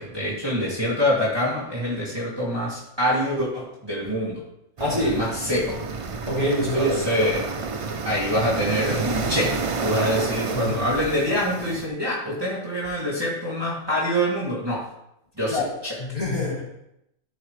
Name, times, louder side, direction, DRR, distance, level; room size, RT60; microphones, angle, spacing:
voice 1, 0.0-4.4 5.0-5.8 6.7-7.5 8.0-14.9 15.4-16.0, equal, 15° right, -8 dB, 2.5 m, -25 dB
voice 2, 4.8-5.2 6.3-7.0 10.5-10.8 15.5-15.7 16.0-16.6, equal, 25° left, -7 dB, 3.0 m, -25 dB
sound 1, 4.8-11.9, right 4 dB, 50° right, 0.4 m, -29 dB
13.5 x 5.6 x 3.2 m, 0.80 s
omnidirectional pair, 1.5 m